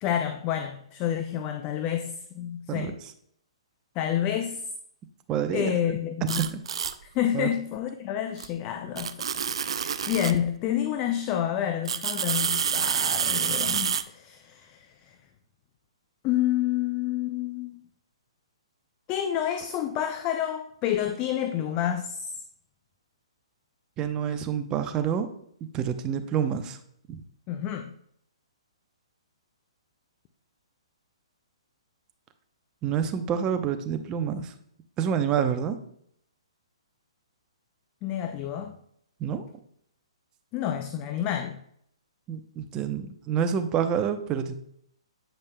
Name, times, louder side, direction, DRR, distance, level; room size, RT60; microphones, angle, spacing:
voice 1, 0.0-3.0 4.0-4.6 5.5-6.4 7.1-15.2 16.2-17.8 19.1-22.3 27.5-27.9 38.0-38.8 40.5-41.6, left 10 dB, 30° left, 0.4 m, -29 dB
voice 2, 5.3-5.7 6.4-6.6 7.3-7.5 24.0-25.3 25.7-26.8 27.1-27.2 32.8-34.5 35.0-35.8 39.2-39.5 42.3-44.5, right 8 dB, 25° right, 0.7 m, -28 dB
sound 1, 6.3-6.9 8.4-8.5 9.0-10.4 11.8-14.0, right 7 dB, 65° right, 0.4 m, -28 dB
8.8 x 5.3 x 2.2 m
hypercardioid pair, 130°, 3 cm